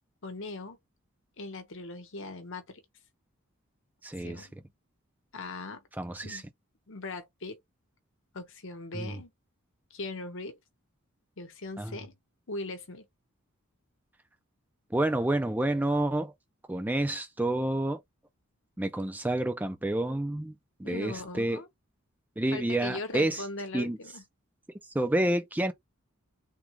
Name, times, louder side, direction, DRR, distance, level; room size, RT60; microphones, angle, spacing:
voice 1, 0.2-0.8 1.4-2.8 4.2-4.5 5.3-5.8 6.2-6.5 6.9-7.6 8.3-9.3 9.9-10.6 11.4-12.1 12.5-13.1 20.8-21.7 22.5-24.2, left 2 dB, 60° left, 0.9 m, -39 dB
voice 2, 4.0-4.5 6.0-6.4 8.9-9.2 11.8-12.0 14.9-16.3 16.7-18.0 18.8-21.6 22.4-23.4 23.7-24.0 24.9-25.7, right 1 dB, 10° right, 0.4 m, -29 dB
3.6 x 2.3 x 3.0 m
head